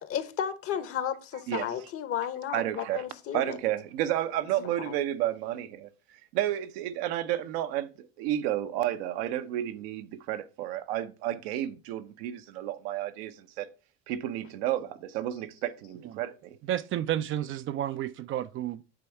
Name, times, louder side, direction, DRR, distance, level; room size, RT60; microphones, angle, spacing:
voice 1, 0.0-3.6 4.6-5.0, left 9 dB, 45° left, 1.0 m, -33 dB
voice 2, 2.5-3.0 3.3-5.9 6.3-13.7 14.1-16.6, right 12 dB, 70° right, 0.8 m, -31 dB
voice 3, 16.6-18.8, right 11 dB, 40° right, 0.4 m, -31 dB
9.0 x 3.4 x 4.5 m
hypercardioid pair, 80°, 31 cm